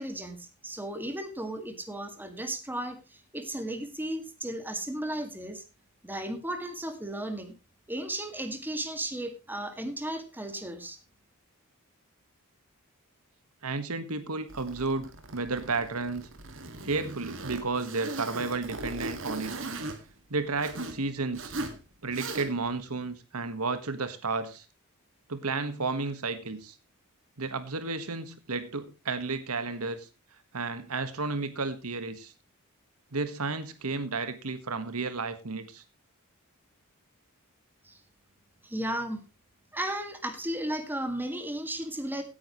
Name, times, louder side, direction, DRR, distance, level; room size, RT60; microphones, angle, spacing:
voice 1, 0.0-5.6 6.0-7.6 7.9-11.0 37.8-38.0 38.6-39.2 39.7-42.2, right 1 dB, 10° right, 2.0 m, -35 dB
voice 2, 13.6-16.3 16.8-19.5 20.3-21.5 22.0-24.6 25.3-26.7 27.4-30.1 30.5-32.3 33.1-35.8, right 3 dB, 80° right, 1.5 m, -32 dB
Zipper (clothing), 14.5-21.0 21.3-21.8 22.1-22.7, right 2 dB, 60° right, 2.1 m, -39 dB
16.5 x 9.7 x 3.1 m
head